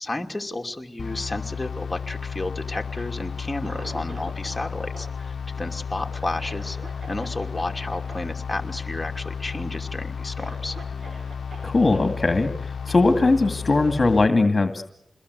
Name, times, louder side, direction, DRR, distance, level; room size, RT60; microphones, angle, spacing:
voice 1, 0.0-6.8 7.1-10.8, left 2 dB, 20° left, 3 dB, 2.9 m, -32 dB
sound 1, 1.0-14.3, left 6 dB, 70° left, 0.9 m, -33 dB
Cough, 2.8-4.7 4.9-7.6 7.9-8.1 8.5-8.7 9.0-9.5 9.9-10.0 10.4-12.1 12.9-13.0, right 2 dB, 60° right, 6.7 m, -44 dB
voice 2, 11.6-14.8, left 3 dB, 40° left, 7 dB, 2.3 m, -20 dB
27.5 x 21.5 x 8.2 m, 0.81 s
cardioid pair, 50°, 0 cm